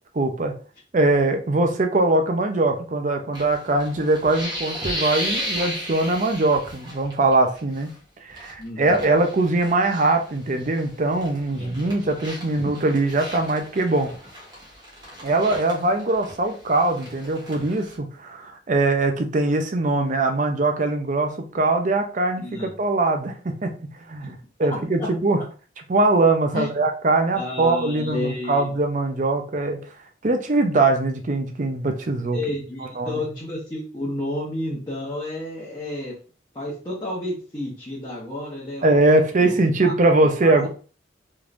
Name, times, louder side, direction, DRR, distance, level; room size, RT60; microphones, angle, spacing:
voice 1, 0.1-0.5 0.9-7.9 8.2-14.1 15.2-23.7 24.1-25.4 25.9-29.8 30.2-32.4 33.0-33.2 38.8-40.7, right 2 dB, 40° right, 5 dB, 0.6 m, -21 dB
sound 1, 3.3-7.3 7.6-7.9 8.3-10.9 11.2-17.9, equal, 20° right, 1.1 m, -35 dB
voice 2, 8.6-9.0 11.5-11.8 22.4-22.7 24.2-24.3 24.7-25.1 26.5-26.7 27.3-28.8 32.3-36.1 36.5-39.0 39.4-39.9 40.2-40.7, left 1 dB, 25° left, -6 dB, 1.0 m, -31 dB
3.6 x 3.1 x 2.5 m, 0.38 s
head